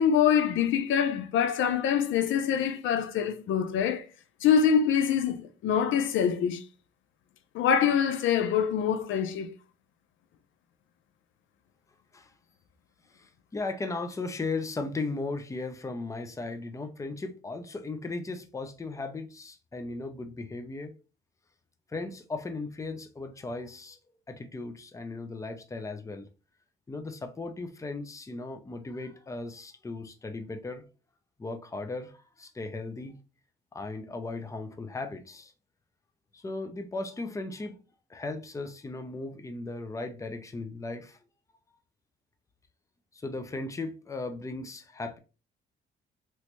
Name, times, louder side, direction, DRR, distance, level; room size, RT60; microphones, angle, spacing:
voice 1, 0.0-4.0 4.4-6.6 7.5-9.5, left 8 dB, 75° left, 0.5 m, -25 dB
voice 2, 13.1-20.9 21.9-24.0 24.3-26.3 26.9-30.8 31.4-33.2 33.7-35.5 36.3-37.8 38.1-41.2 43.1-45.2, left 3 dB, 15° left, 0.5 m, -37 dB
3.1 x 3.0 x 3.0 m
cardioid pair, 90°, 20 cm